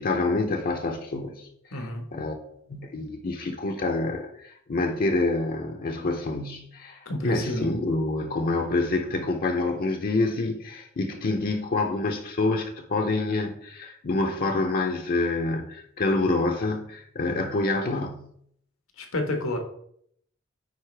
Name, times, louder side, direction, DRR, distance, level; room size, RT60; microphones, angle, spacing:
voice 1, 0.0-2.3 2.7-18.3, left 2 dB, 45° left, 3 dB, 0.7 m, -27 dB
voice 2, 1.7-2.0 7.0-7.7 19.0-19.6, left 1 dB, 85° left, 3 dB, 1.4 m, -29 dB
9.5 x 4.1 x 3.3 m, 0.68 s
head